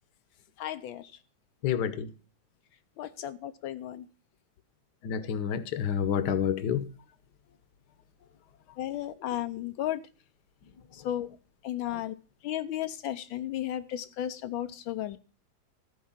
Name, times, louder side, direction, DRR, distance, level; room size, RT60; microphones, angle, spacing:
voice 1, 0.6-1.1 3.0-4.0 8.8-10.0 10.9-11.3 11.6-12.1 12.4-15.2, left 12 dB, 85° left, 1.5 m, -34 dB
voice 2, 1.6-2.1 5.0-6.9 11.8-12.0, left 8 dB, 65° left, 1.5 m, -29 dB
14.0 x 4.7 x 7.2 m
omnidirectional pair, 2.1 m